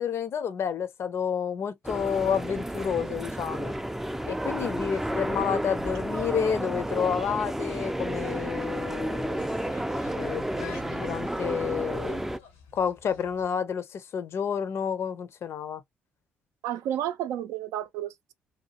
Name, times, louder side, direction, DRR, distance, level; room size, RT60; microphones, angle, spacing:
voice 1, 0.0-3.7 4.3-9.5 10.2-12.2 12.7-15.8, left 7 dB, 55° left, 0.5 m, -30 dB
sound 1, 1.8-12.4, right 1 dB, 5° right, 0.3 m, -31 dB
sound 2, 9.1-13.5, left 6 dB, 85° left, 0.8 m, -49 dB
voice 2, 16.6-18.3, right 11 dB, 70° right, 0.4 m, -31 dB
2.7 x 2.2 x 2.8 m
hypercardioid pair, 55°, 5 cm